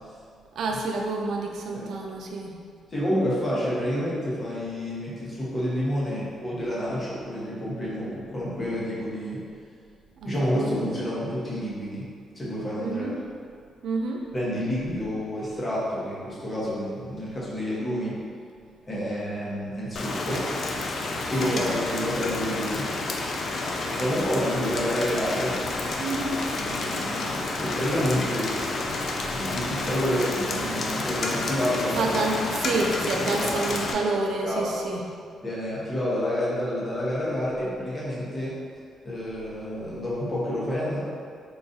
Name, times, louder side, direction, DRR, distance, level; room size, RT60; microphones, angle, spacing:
voice 1, 0.6-2.6 10.2-10.7 12.8-13.2 13.8-14.3 21.4-21.7 26.0-26.4 31.0-31.1 32.0-35.0, right 3 dB, 70° right, 1 dB, 0.4 m, -28 dB
voice 2, 2.9-9.4 10.2-12.0 12.3-13.1 14.3-18.2 18.8-20.4 21.3-22.9 24.0-25.6 26.5-28.5 29.3-32.2 33.2-33.5 34.4-34.7 35.4-38.5 39.0-41.0, equal, 25° left, -8 dB, 1.0 m, -29 dB
Rain, 20.0-33.9, left 2 dB, 55° left, 0.3 m, -30 dB
3.8 x 2.4 x 2.6 m, 2.2 s
cardioid pair, 105°, 0 cm